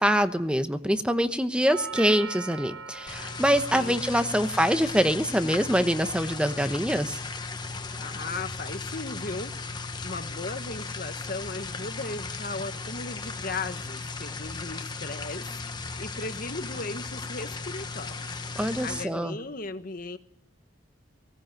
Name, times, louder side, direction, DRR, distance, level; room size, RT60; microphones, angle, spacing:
voice 1, 0.0-7.2 18.6-19.4, equal, 5° right, 9 dB, 1.0 m, -24 dB
Doorbell, 1.7-9.7, right 5 dB, 60° right, 1.3 m, -44 dB
sound 1, 3.1-19.0, left 4 dB, 20° left, 1.3 m, -36 dB
voice 2, 3.5-4.4 7.9-20.2, left 3 dB, 40° left, 9 dB, 1.3 m, -37 dB
18.5 x 18.5 x 9.1 m, 0.66 s
head